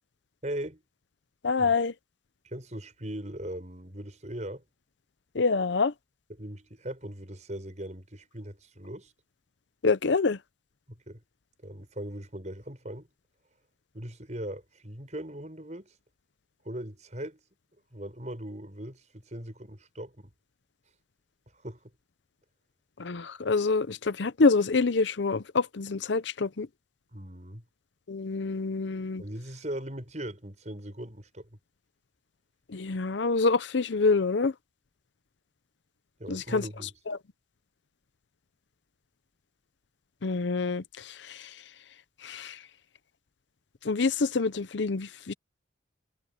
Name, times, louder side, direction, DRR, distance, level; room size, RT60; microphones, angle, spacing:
voice 1, 0.4-0.8 1.6-1.7 2.4-4.6 6.3-9.1 10.9-11.2 11.6-13.1 13.9-15.9 16.6-17.4 17.9-20.3 21.5-21.9 27.1-27.6 29.2-31.5 36.2-36.9, right 1 dB, 40° right, 6.7 m, -39 dB
voice 2, 1.4-1.9 5.3-5.9 9.8-10.4 23.0-26.7 28.1-29.2 32.7-34.5 36.3-36.6 37.1-37.2 40.2-41.5 42.2-42.6 43.8-45.3, left 4 dB, 70° left, 0.7 m, -26 dB
head